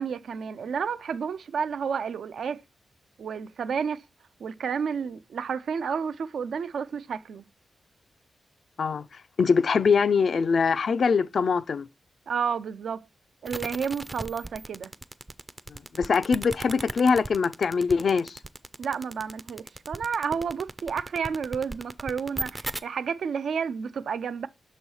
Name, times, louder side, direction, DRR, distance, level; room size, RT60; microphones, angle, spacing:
voice 1, 0.0-2.6 3.2-4.0 4.4-7.4 12.3-13.1 13.4-14.9 18.8-24.5, right 6 dB, 85° right, 0.4 m, -31 dB
voice 2, 8.8-11.9 15.7-18.4, left 5 dB, 60° left, 0.3 m, -23 dB
sound 1, 13.4-22.8, right 2 dB, 20° right, 0.4 m, -36 dB
6.2 x 3.0 x 5.4 m
wide cardioid pair, 115°, 0 cm